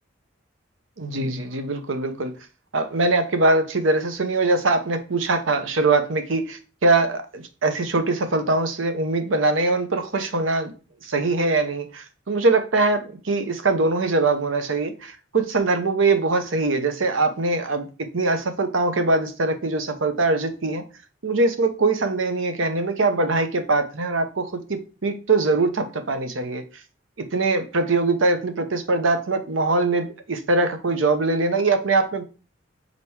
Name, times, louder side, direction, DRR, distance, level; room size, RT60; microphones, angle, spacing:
voice 1, 1.0-2.3 2.7-10.7 11.0-20.9 21.2-26.6 27.2-32.2, right 3 dB, 85° right, 9 dB, 0.9 m, -22 dB
5.2 x 4.1 x 4.7 m, 0.35 s
head